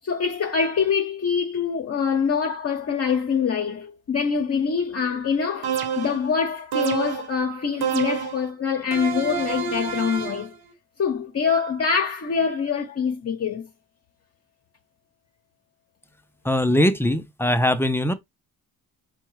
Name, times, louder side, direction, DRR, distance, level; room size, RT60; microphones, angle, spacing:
voice 1, 0.0-10.5 11.0-13.7, left 6 dB, 40° left, 0.9 m, -25 dB
sound 1, 5.6-6.3 6.7-7.3 7.8-8.4 8.9-10.5, right 7 dB, 85° right, 1.0 m, -28 dB
voice 2, 16.4-18.1, left 1 dB, 5° left, 0.5 m, -21 dB
4.4 x 2.3 x 4.7 m
cardioid pair, 105°, 36 cm